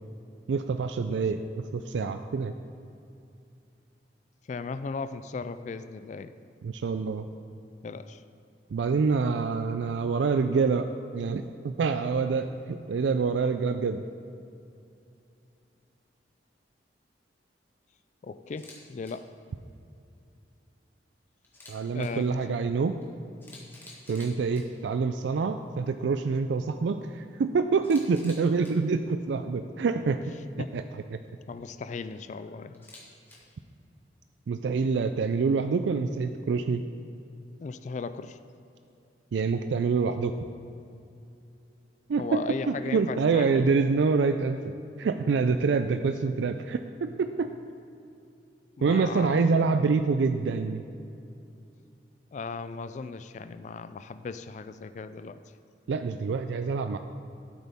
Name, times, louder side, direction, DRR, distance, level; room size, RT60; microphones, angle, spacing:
voice 1, 0.5-1.4 1.7-2.5 6.6-7.2 8.7-10.9 11.1-14.0 21.7-23.0 24.1-30.3 30.7-30.8 31.1-31.2 34.5-36.8 39.3-40.3 42.1-44.7 45.0-47.5 48.8-50.8 55.9-57.0, right 4 dB, 85° right, 8 dB, 0.4 m, -26 dB
voice 2, 4.5-6.3 7.8-8.2 18.2-19.3 21.9-22.4 30.6-30.7 31.5-32.9 37.6-38.4 42.2-43.7 46.2-46.3 48.8-49.4 52.3-55.4, left 4 dB, 40° left, 12 dB, 0.3 m, -37 dB
Camera, 18.6-18.8 19.0-19.1 21.4-22.1 23.0-23.1 23.4-24.6 27.8-28.7 32.7-33.4, left 2 dB, 10° left, 1.6 m, -49 dB
13.0 x 8.1 x 3.6 m, 2.6 s
head